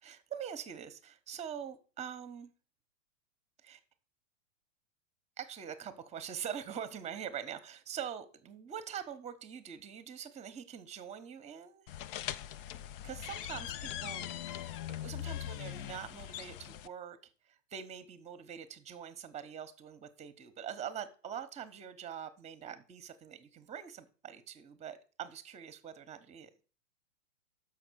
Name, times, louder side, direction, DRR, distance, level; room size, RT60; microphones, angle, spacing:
voice 1, 0.0-2.5 3.6-3.8 5.4-11.8 13.0-17.2 17.4-26.6, right 8 dB, 15° right, 1.0 m, -44 dB
sound 1, 11.9-16.9, left 12 dB, 45° left, 0.5 m, -41 dB
6.4 x 6.1 x 6.3 m
hypercardioid pair, 120°, 39 cm